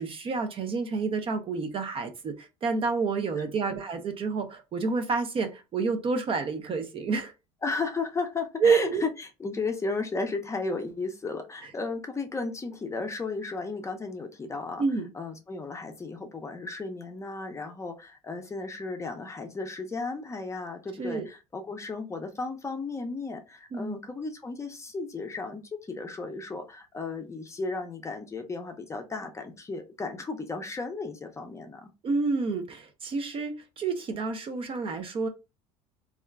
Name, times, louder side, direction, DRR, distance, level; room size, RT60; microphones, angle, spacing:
voice 1, 0.0-7.3 8.6-9.0 14.8-15.1 21.0-21.3 23.7-24.0 32.0-35.3, right 4 dB, 35° right, 0.5 m, -29 dB
voice 2, 3.4-3.7 7.6-14.8 15.1-31.9, left 3 dB, 20° left, 0.6 m, -34 dB
3.4 x 2.4 x 2.2 m
supercardioid pair, 105°, 15 cm